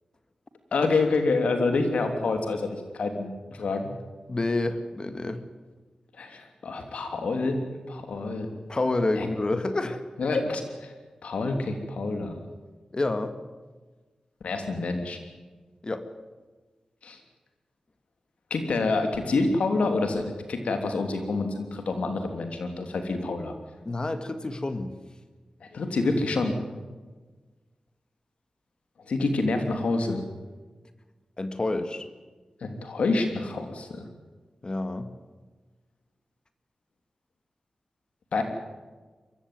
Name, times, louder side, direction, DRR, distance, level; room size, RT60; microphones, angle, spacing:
voice 1, 0.7-3.9 6.1-7.6 7.9-8.5 9.2-9.3 10.2-10.9 11.2-12.4 14.4-15.2 17.0-17.2 18.5-23.5 25.6-26.6 29.1-30.2 32.6-34.0 38.3-38.4, left 3 dB, 85° left, 5 dB, 3.1 m, -27 dB
voice 2, 4.3-5.4 8.7-10.0 10.3-10.4 12.9-13.3 15.8-16.0 23.9-24.9 31.4-32.1 34.6-35.1, left 2 dB, 40° left, 9 dB, 1.9 m, -28 dB
23.5 x 15.0 x 9.4 m, 1.3 s
cardioid pair, 45°, 2 cm